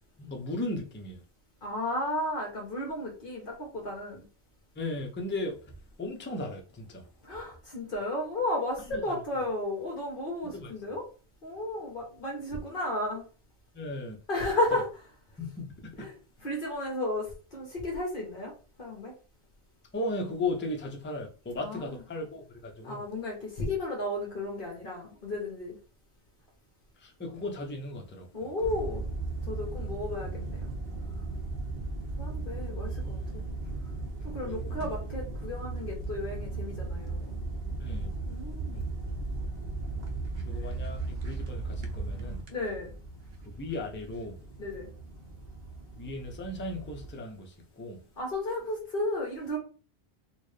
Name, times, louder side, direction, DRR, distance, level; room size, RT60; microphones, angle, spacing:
voice 1, 0.2-1.2 4.8-5.7 6.0-7.0 8.9-9.0 10.5-10.7 13.7-14.2 15.4-15.7 19.9-23.0 27.0-28.5 34.4-34.8 37.8-38.1 38.7-38.9 40.4-41.0 41.2-42.4 43.4-44.4 46.0-48.0, left 2 dB, 15° left, 0.5 m, -36 dB
voice 2, 1.6-4.3 7.2-11.0 11.4-13.3 14.3-14.9 16.0-16.1 16.4-19.1 21.6-22.0 22.8-25.8 28.3-29.0 29.5-30.7 32.2-33.5 34.2-37.4 38.3-38.8 40.6-40.7 42.5-42.9 44.6-44.9 48.2-49.6, left 1 dB, 50° left, 1.1 m, -33 dB
sound 1, 28.6-47.1, right 3 dB, 65° right, 0.9 m, -36 dB
4.2 x 2.1 x 3.2 m
omnidirectional pair, 1.1 m